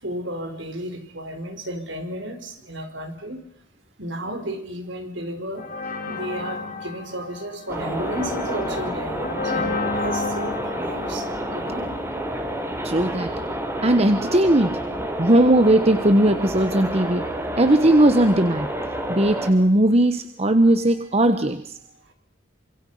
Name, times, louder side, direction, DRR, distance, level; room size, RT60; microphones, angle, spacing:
voice 1, 0.0-3.4 4.0-5.7 6.1-11.8, right 1 dB, 65° right, 7 dB, 4.7 m, -33 dB
sound 1, 5.6-12.3, left 3 dB, 45° left, 3.9 m, -31 dB
sound 2, 7.7-19.5, right 1 dB, 15° right, 3.5 m, -29 dB
voice 2, 12.8-13.3 13.8-14.8 15.2-17.2 17.6-18.7 19.1-21.8, right 1 dB, 30° right, 9 dB, 1.2 m, -18 dB
28.0 x 26.0 x 5.6 m, 0.64 s
head